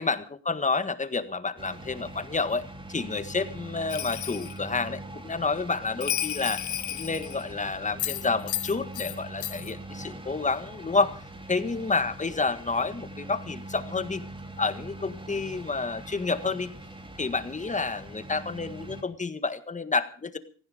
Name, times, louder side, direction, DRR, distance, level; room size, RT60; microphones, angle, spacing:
voice 1, 0.0-2.6 2.9-6.6 6.9-11.2 11.5-14.2 14.6-16.8 17.2-20.4, left 4 dB, 25° left, 11 dB, 1.7 m, -29 dB
sound 1, 1.6-19.0, right 1 dB, 15° right, 2.9 m, -42 dB
Bell, 3.9-4.6 6.0-7.5 8.0-9.2 9.4-9.7, left 12 dB, 75° left, 1.1 m, -32 dB
18.5 x 15.5 x 5.1 m, 0.41 s
cardioid pair, 90°, 30 cm